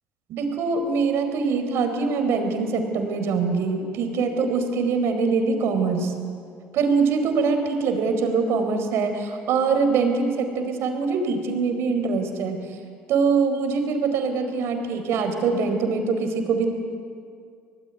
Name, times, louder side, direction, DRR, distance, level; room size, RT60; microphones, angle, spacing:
voice 1, 0.3-6.1 6.7-12.6 13.1-16.7, right 4 dB, 65° right, 6 dB, 4.5 m, -23 dB
25.0 x 18.5 x 9.5 m, 2.3 s
hypercardioid pair, 70°, 5 cm